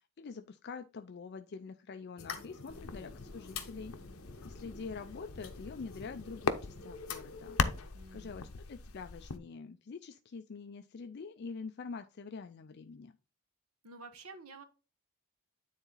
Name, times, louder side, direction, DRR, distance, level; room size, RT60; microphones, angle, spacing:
voice 1, 0.0-3.9 4.4-7.6 8.1-13.2, left 5 dB, 50° left, 8 dB, 0.4 m, -45 dB
sound 1, 2.2-7.8, left 5 dB, 65° left, 1.3 m, -47 dB
voice 2, 2.6-3.0 7.9-8.4 13.8-14.6, right 3 dB, 80° right, 8 dB, 1.1 m, -51 dB
sound 2, 2.7-9.4, left 5 dB, 80° left, 0.7 m, -39 dB
9.6 x 4.0 x 4.0 m, 0.31 s
head